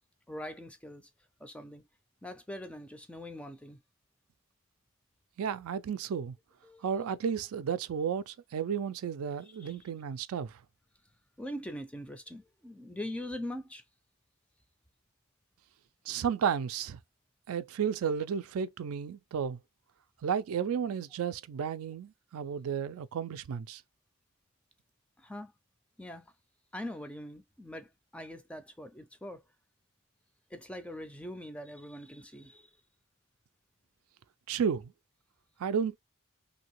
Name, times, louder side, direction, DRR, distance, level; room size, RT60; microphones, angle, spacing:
voice 1, 0.3-1.1 1.4-1.8 2.2-3.8 6.6-6.9 9.4-9.9 11.4-13.8 25.2-25.5 26.0-26.3 26.7-29.4 30.5-32.8, left 1 dB, 5° left, 0.3 m, -42 dB
voice 2, 5.4-6.3 6.8-10.5 16.1-17.0 17.5-19.6 20.2-23.8 34.5-34.9 35.6-36.0, right 7 dB, 75° right, 0.3 m, -33 dB
3.0 x 2.7 x 2.9 m
head